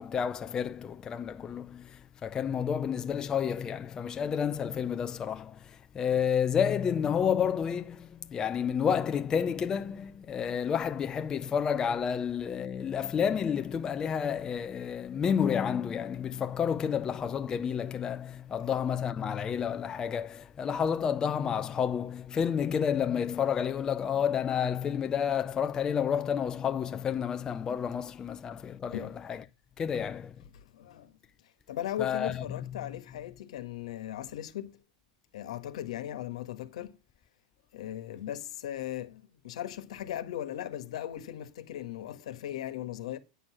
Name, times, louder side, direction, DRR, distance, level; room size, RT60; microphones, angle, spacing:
voice 1, 0.0-29.4 29.8-30.3 32.0-32.3, left 7 dB, 20° left, 0.5 m, -30 dB
voice 2, 30.5-31.2 31.7-34.8 35.3-37.0 37.7-43.2, left 12 dB, 80° left, 1.4 m, -38 dB
9.2 x 5.9 x 6.2 m
supercardioid pair, 135°, 3 cm